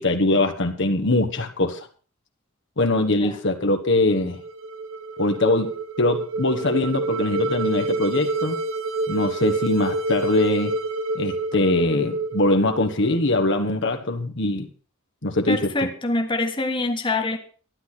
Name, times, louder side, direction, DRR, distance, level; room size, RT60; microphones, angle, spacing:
voice 1, 0.0-1.9 2.8-4.4 5.2-8.6 9.1-10.7 11.1-14.7 15.2-15.7, left 2 dB, 60° left, 1.5 m, -22 dB
sound 1, 4.2-13.4, right 2 dB, 70° right, 1.4 m, -28 dB
voice 2, 15.5-17.4, left 2 dB, 25° left, 1.6 m, -25 dB
12.5 x 10.5 x 6.0 m
head